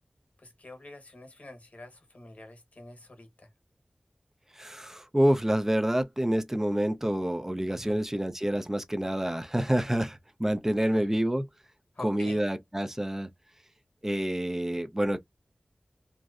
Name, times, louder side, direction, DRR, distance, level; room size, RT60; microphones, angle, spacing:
voice 1, 0.4-3.5 7.7-8.0 10.8-11.1 11.9-12.4, left 2 dB, 60° left, 1.0 m, -46 dB
voice 2, 4.6-11.5 12.0-13.3 14.0-15.2, right 1 dB, 15° right, 0.5 m, -27 dB
2.6 x 2.0 x 2.3 m
wide cardioid pair, 45°, 3 cm